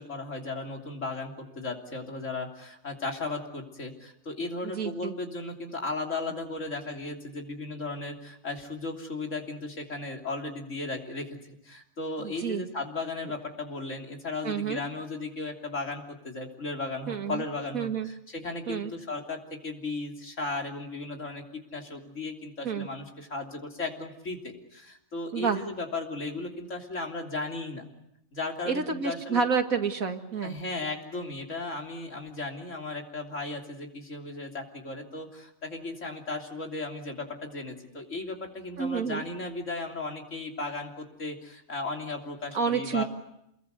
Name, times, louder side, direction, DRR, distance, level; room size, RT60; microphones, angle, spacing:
voice 1, 0.0-11.3 11.6-27.8 28.3-29.4 30.4-43.0, left 3 dB, 60° left, 2 dB, 3.6 m, -36 dB
voice 2, 4.6-5.1 12.2-12.6 14.4-14.8 17.1-17.4 17.7-18.1 18.7-18.9 22.6-22.9 25.3-25.6 28.7-30.6 38.8-39.2 42.5-43.0, right 6 dB, 85° right, 6 dB, 2.3 m, -29 dB
29.0 x 21.5 x 8.1 m, 0.81 s
omnidirectional pair, 1.4 m